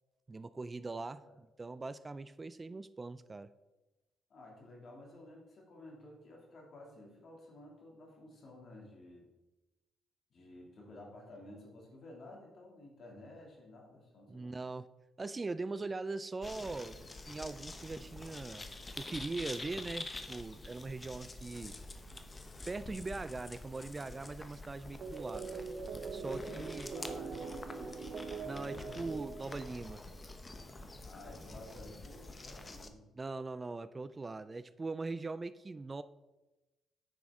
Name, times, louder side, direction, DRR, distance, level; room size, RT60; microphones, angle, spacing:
voice 1, 0.3-3.5 14.3-14.9 15.2-17.0 17.3-18.7 18.9-21.8 22.7-25.5 26.1-26.9 28.4-30.0 33.2-36.0, right 3 dB, 30° right, 14 dB, 0.4 m, -41 dB
voice 2, 4.3-9.3 10.3-14.5 26.2-28.2 28.6-29.0 31.0-33.1, left 2 dB, 55° left, 0 dB, 2.6 m, -53 dB
sound 1, 16.4-32.9, left 2 dB, 30° left, 0.9 m, -47 dB
sound 2, 25.0-30.2, right 4 dB, 60° right, 0.9 m, -43 dB
9.2 x 6.1 x 3.7 m, 1.1 s
supercardioid pair, 60°, 0 cm